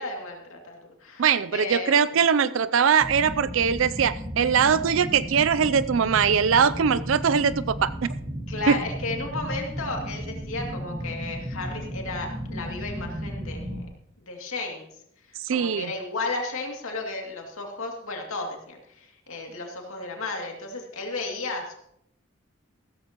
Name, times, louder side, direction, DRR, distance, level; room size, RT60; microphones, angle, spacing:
voice 1, 0.0-1.3 1.5-1.9 8.5-13.9 14.2-14.9 15.3-21.8, left 3 dB, 90° left, 1 dB, 2.5 m, -34 dB
voice 2, 1.2-8.1 8.7-8.8 15.4-15.9, right 7 dB, 75° right, 15 dB, 0.4 m, -21 dB
sound 1, 3.0-13.8, equal, 20° right, 1.1 m, -34 dB
15.0 x 14.0 x 3.0 m, 0.74 s
head